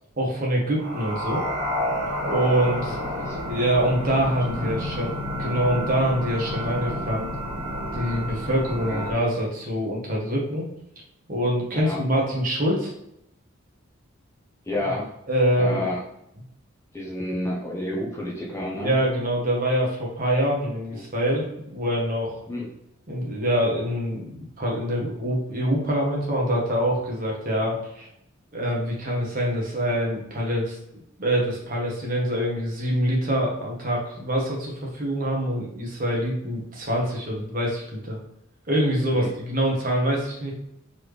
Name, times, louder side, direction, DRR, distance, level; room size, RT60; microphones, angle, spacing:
voice 1, 0.2-1.4 2.2-3.0 3.5-7.3 7.9-10.7 11.3-12.9 14.8-14.9 15.3-15.9 18.8-22.4 23.1-28.1 28.5-30.8 31.2-38.2 38.7-40.5, equal, 40° right, -2 dB, 1.1 m, -25 dB
sound 1, 0.8-9.1, equal, 80° right, 1.3 m, -30 dB
voice 2, 2.8-3.4 4.6-4.9 8.8-9.2 11.7-12.0 14.7-15.1 15.6-16.0 16.9-19.0 20.9-21.0 22.5-22.7 39.1-39.3, left 1 dB, 15° left, -3 dB, 0.6 m, -31 dB
4.0 x 3.3 x 3.2 m, 0.80 s
head